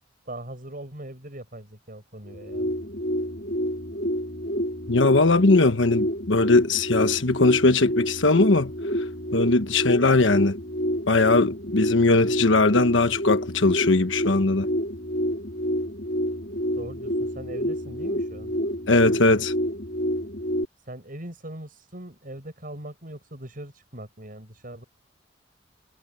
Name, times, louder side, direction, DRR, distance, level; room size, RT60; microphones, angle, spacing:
voice 1, 0.3-2.7 16.7-18.5 20.8-24.8, right 1 dB, 45° right, 7.8 m, -40 dB
sound 1, 2.3-20.7, equal, 55° left, 3.7 m, -28 dB
voice 2, 4.9-8.7 9.3-10.6 11.1-14.7 18.9-19.5, left 3 dB, 85° left, 1.3 m, -20 dB
head